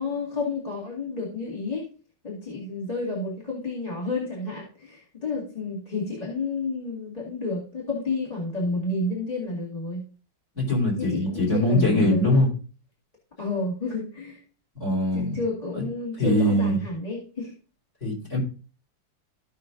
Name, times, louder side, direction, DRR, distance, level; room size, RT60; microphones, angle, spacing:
voice 1, 0.0-1.8 2.2-10.0 11.0-12.5 13.4-14.4 15.1-17.5, left 2 dB, 20° left, -5 dB, 2.2 m, -30 dB
voice 2, 10.6-12.5 14.8-15.4 15.7-15.8 16.2-16.8 18.0-18.4, left 1 dB, 40° left, -3 dB, 3.8 m, -22 dB
15.5 x 5.7 x 2.5 m, 0.36 s
omnidirectional pair, 2.1 m